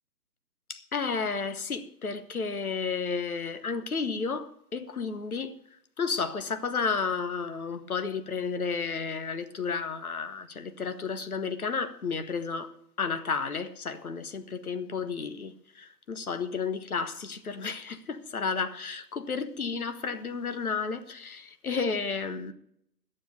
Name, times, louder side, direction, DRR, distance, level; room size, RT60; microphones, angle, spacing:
voice 1, 0.7-5.6 6.0-12.7 13.0-22.5, left 5 dB, 65° left, 1.3 m, -32 dB
11.5 x 7.7 x 8.5 m
figure-of-eight pair, 140°, 48 cm